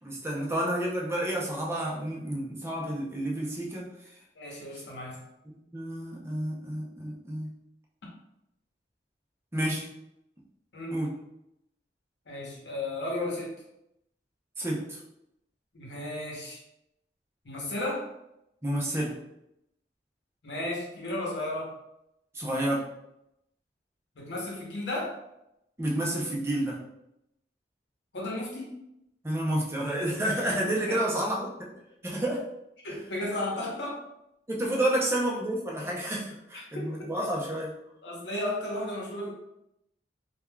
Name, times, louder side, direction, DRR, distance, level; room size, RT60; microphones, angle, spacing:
voice 1, 0.0-3.9 5.5-7.5 9.5-9.8 10.9-11.1 14.6-15.0 18.6-19.2 22.3-22.9 25.8-26.8 29.2-31.5 32.0-32.4 32.9-33.0 34.5-37.7, right 1 dB, 15° right, -3 dB, 0.6 m, -30 dB
voice 2, 4.4-5.2 10.7-10.9 12.3-13.5 15.7-16.6 17.4-18.1 20.4-21.7 24.2-25.2 28.1-28.7 30.9-31.3 32.8-34.0 36.5-36.9 38.0-39.3, left 1 dB, 80° left, -3 dB, 0.9 m, -34 dB
3.4 x 2.3 x 2.2 m, 0.83 s
head